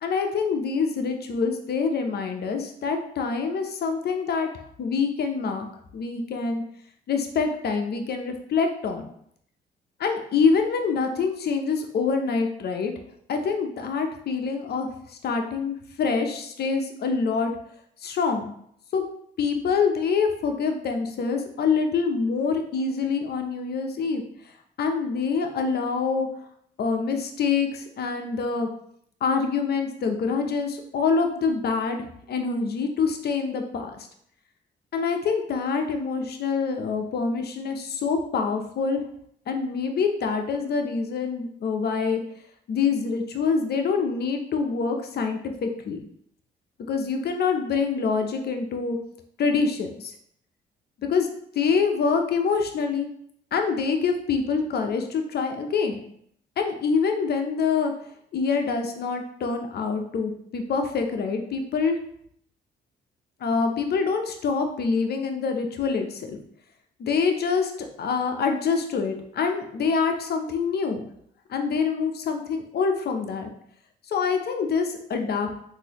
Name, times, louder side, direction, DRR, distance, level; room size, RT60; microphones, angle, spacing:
voice 1, 0.0-4.5 4.8-5.7 5.9-6.6 7.1-9.1 10.0-12.9 13.3-17.5 18.0-18.5 18.9-19.0 19.4-24.2 24.8-26.3 26.8-28.7 29.2-34.0 34.9-39.0 39.5-42.2 42.7-46.0 46.9-49.0 49.4-50.1 51.1-51.3 51.5-53.1 53.5-56.0 56.6-57.9 58.3-62.0 63.4-66.4 67.0-71.1 71.5-73.5 74.1-75.6, left 5 dB, 55° left, 5 dB, 0.6 m, -25 dB
3.8 x 2.7 x 2.9 m, 0.68 s
supercardioid pair, 65°, 20 cm